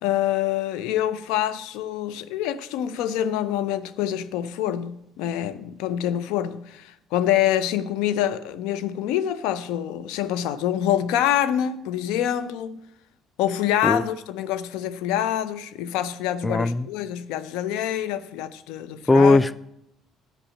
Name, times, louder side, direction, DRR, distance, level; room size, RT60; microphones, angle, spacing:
voice 1, 0.0-12.8 13.4-19.4, left 11 dB, 80° left, 0.6 m, -26 dB
voice 2, 16.4-16.9 19.1-19.6, left 3 dB, 15° left, 0.4 m, -18 dB
10.0 x 5.4 x 8.5 m
supercardioid pair, 75°, 0 cm